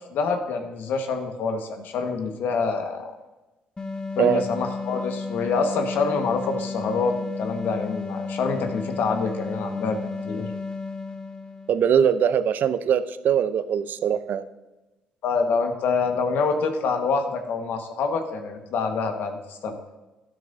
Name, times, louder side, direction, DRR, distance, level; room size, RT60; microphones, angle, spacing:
voice 1, 0.1-3.1 4.2-10.5 15.2-19.8, left 4 dB, 65° left, 5 dB, 1.4 m, -26 dB
sound 1, 3.8-11.9, left 3 dB, 20° left, 0.8 m, -33 dB
voice 2, 11.7-14.4, right 8 dB, 60° right, 13 dB, 0.6 m, -21 dB
12.0 x 11.5 x 2.7 m, 1.1 s
hypercardioid pair, 55°, 4 cm